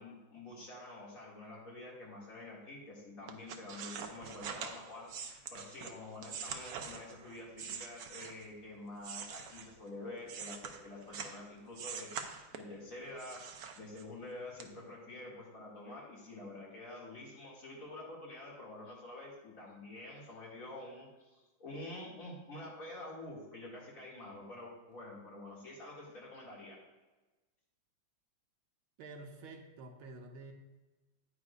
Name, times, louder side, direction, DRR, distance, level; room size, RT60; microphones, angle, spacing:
voice 1, 0.0-12.1 12.5-13.4 13.7-26.8, left 2 dB, 40° left, -5 dB, 2.6 m, -48 dB
sound 1, 3.3-8.5 9.0-11.4 11.7-12.8 13.2-14.2 14.6-14.7, right 7 dB, 70° right, 0.9 m, -44 dB
voice 2, 29.0-30.5, right 3 dB, 85° right, 4 dB, 1.8 m, -49 dB
9.5 x 9.5 x 2.4 m, 1.2 s
omnidirectional pair, 2.2 m